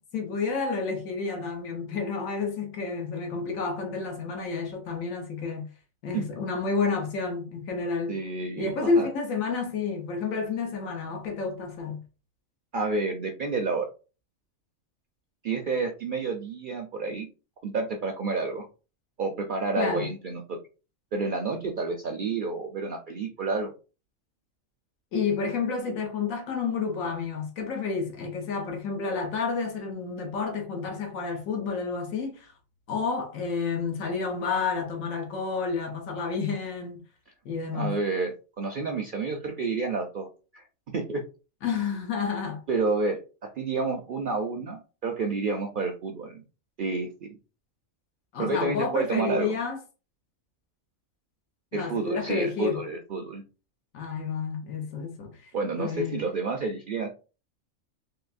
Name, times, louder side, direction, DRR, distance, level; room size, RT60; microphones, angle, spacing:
voice 1, 0.0-5.7 6.0-8.2 8.6-12.0 19.8-20.1 25.1-32.5 32.9-37.0 37.4-38.0 41.6-42.6 48.3-49.8 51.7-52.8 53.9-55.5 55.8-56.2, left 4 dB, 80° left, 1.3 m, -30 dB
voice 2, 8.1-9.1 12.7-13.9 15.4-17.3 17.6-18.7 19.2-20.6 21.1-23.7 37.7-41.2 42.7-46.4 46.8-47.4 48.4-49.6 51.7-53.4 55.5-57.1, right 3 dB, 65° right, 0.5 m, -30 dB
3.8 x 2.7 x 2.5 m
omnidirectional pair, 1.4 m